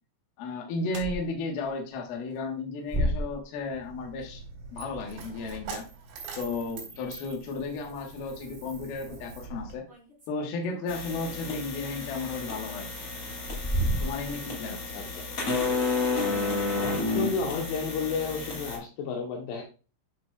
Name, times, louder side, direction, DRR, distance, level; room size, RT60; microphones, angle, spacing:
voice 1, 0.4-4.4 4.7-5.9 6.4-9.9 10.3-12.9 14.0-14.8, left 3 dB, 65° left, 1 dB, 2.8 m, -34 dB
sound 1, 0.8-1.2 1.6-1.7 2.9-3.6 6.3-6.4 7.5-7.6 7.9-8.1 8.6-8.7 9.9-11.3 12.3-12.4 13.3-14.5 14.8-14.9 15.5-16.0 16.4-16.7, right 1 dB, 15° right, 2.0 m, -32 dB
Coin (dropping), 3.6-9.7, right 5 dB, 75° right, 5.0 m, -44 dB
sound 2, 10.9-18.8, left 3 dB, 35° left, 3.0 m, -31 dB
voice 2, 14.7-15.3 16.7-19.6, left 4 dB, 80° left, 0 dB, 3.6 m, -32 dB
11.0 x 5.9 x 2.3 m, 0.35 s
omnidirectional pair, 5.5 m